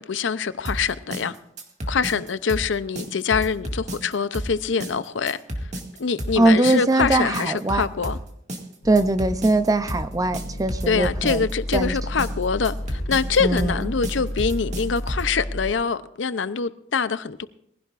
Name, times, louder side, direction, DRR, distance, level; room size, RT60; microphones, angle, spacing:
voice 1, 0.0-1.4 1.9-5.4 6.0-8.2 10.9-17.5, left 5 dB, 85° left, 0.6 m, -24 dB
sound 1, 0.7-15.4, equal, 40° right, 2.0 m, -32 dB
voice 2, 6.4-7.8 8.8-11.5 11.7-12.0 13.4-13.9, right 2 dB, 20° right, 0.6 m, -21 dB
sound 2, 8.8-15.7, equal, 60° left, 1.9 m, -32 dB
22.0 x 16.0 x 2.5 m
head